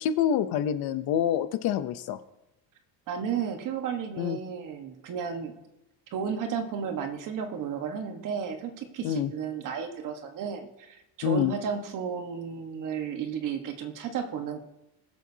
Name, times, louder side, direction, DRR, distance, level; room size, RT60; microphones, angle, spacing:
voice 1, 0.0-2.2 4.2-4.4 9.0-9.3 11.2-11.5, left 9 dB, 70° left, 12 dB, 0.8 m, -26 dB
voice 2, 3.1-5.6 6.1-14.6, right 7 dB, 55° right, 5 dB, 1.4 m, -33 dB
20.5 x 7.5 x 2.8 m, 0.92 s
cardioid pair, 175°, 39 cm